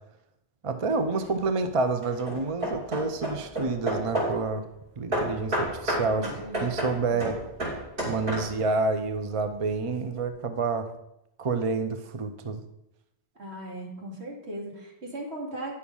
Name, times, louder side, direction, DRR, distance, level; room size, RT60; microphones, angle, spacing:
voice 1, 0.6-4.6 5.0-6.3 6.6-7.4 8.0-10.9 11.4-12.6, right 3 dB, 35° right, 8 dB, 0.7 m, -28 dB
Hammer / Wood, 0.9-1.4 2.0-4.5 5.1-8.8, right 1 dB, 55° right, 3.3 m, -31 dB
voice 2, 6.1-6.8 7.1-7.4 13.4-15.8, right 1 dB, 80° right, -2 dB, 2.6 m, -38 dB
9.8 x 6.6 x 5.4 m, 0.84 s
omnidirectional pair, 1.1 m